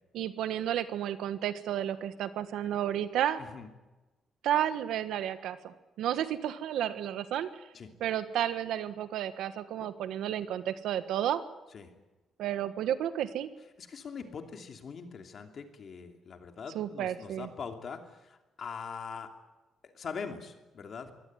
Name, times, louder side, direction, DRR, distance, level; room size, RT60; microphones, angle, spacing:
voice 1, 0.1-3.4 4.4-7.5 8.0-11.4 12.4-13.5 16.7-17.5, right 11 dB, 90° right, 11 dB, 1.5 m, -32 dB
voice 2, 13.8-19.3 19.8-21.1, left 6 dB, 45° left, 5 dB, 2.8 m, -42 dB
24.0 x 17.0 x 9.8 m, 1.1 s
cardioid pair, 150°, 0 cm